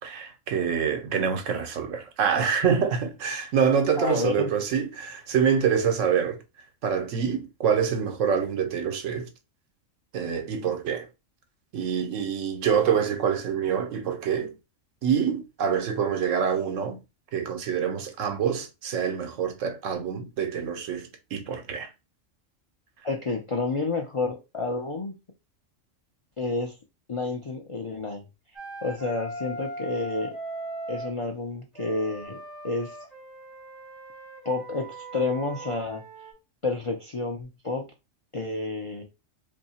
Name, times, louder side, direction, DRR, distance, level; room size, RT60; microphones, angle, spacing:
voice 1, 0.0-6.4 6.8-9.3 10.1-11.1 11.7-14.5 15.0-17.0 17.3-21.9, right 7 dB, 80° right, 1.1 m, -26 dB
voice 2, 4.0-4.5 23.0-25.1 26.4-26.8 27.1-28.2 28.8-30.4 30.9-33.0 34.4-36.0 36.6-37.9 38.3-39.0, left 3 dB, 60° left, 0.3 m, -30 dB
Wind instrument woodwind instrument, 28.5-31.2 31.7-36.3, right 1 dB, ahead, 1.4 m, -39 dB
2.7 x 2.6 x 4.1 m
omnidirectional pair, 1.3 m